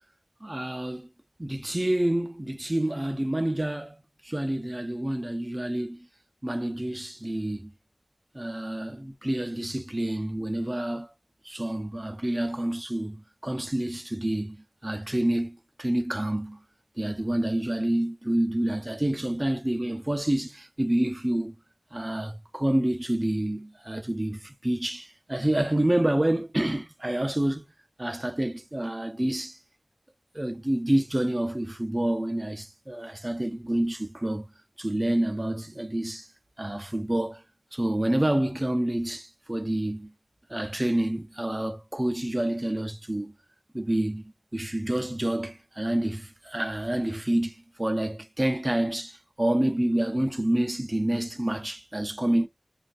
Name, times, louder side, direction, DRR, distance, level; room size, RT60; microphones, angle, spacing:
voice 1, 0.4-1.1 1.4-6.1 6.4-7.7 8.3-11.1 11.4-16.6 17.0-21.6 21.9-27.6 28.0-29.6 30.3-34.5 34.8-36.3 36.6-37.4 37.7-40.1 40.5-43.3 43.7-52.5, right 1 dB, 35° right, 0.5 m, -28 dB
2.5 x 2.5 x 3.2 m
wide cardioid pair, 45°, 0 cm